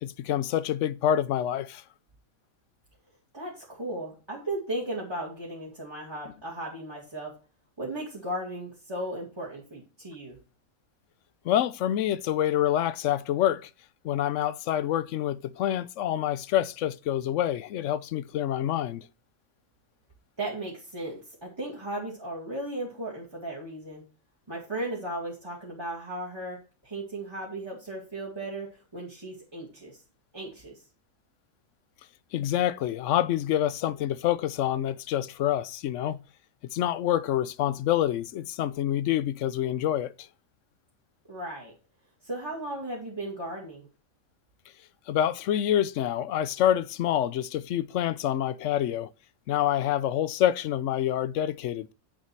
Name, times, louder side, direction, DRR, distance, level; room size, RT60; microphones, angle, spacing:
voice 1, 0.0-1.8 11.4-13.7 14.0-19.0 32.3-36.2 36.7-40.1 45.1-49.1 49.5-51.9, left 11 dB, 65° left, 0.8 m, -27 dB
voice 2, 3.3-7.3 7.8-10.4 20.4-24.0 24.5-26.6 26.8-30.0 30.3-30.8 41.3-41.7 42.2-43.9, right 1 dB, 20° right, 2.0 m, -36 dB
8.3 x 6.4 x 4.5 m
omnidirectional pair, 1.5 m